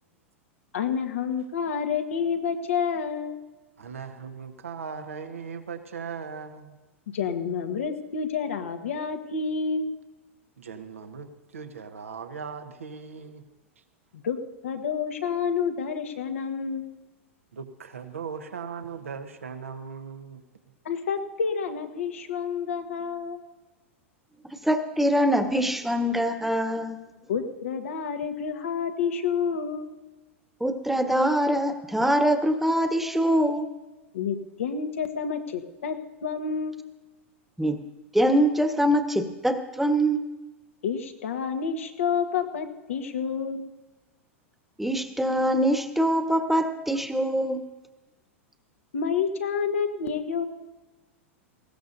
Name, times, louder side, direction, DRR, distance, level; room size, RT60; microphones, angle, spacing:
voice 1, 0.7-3.4 7.1-9.9 14.2-14.4 14.6-16.9 20.8-23.4 27.3-30.0 34.1-36.8 40.8-43.7 48.9-50.4, left 6 dB, 75° left, 6 dB, 1.5 m, -29 dB
voice 2, 3.8-6.7 10.6-13.4 17.5-20.4, right 6 dB, 85° right, 6 dB, 1.4 m, -38 dB
voice 3, 24.6-27.0 30.6-33.7 37.6-37.8 38.1-40.2 44.8-47.6, equal, 5° right, 7 dB, 1.3 m, -23 dB
20.0 x 16.5 x 2.7 m, 1.1 s
hypercardioid pair, 100°, 7 cm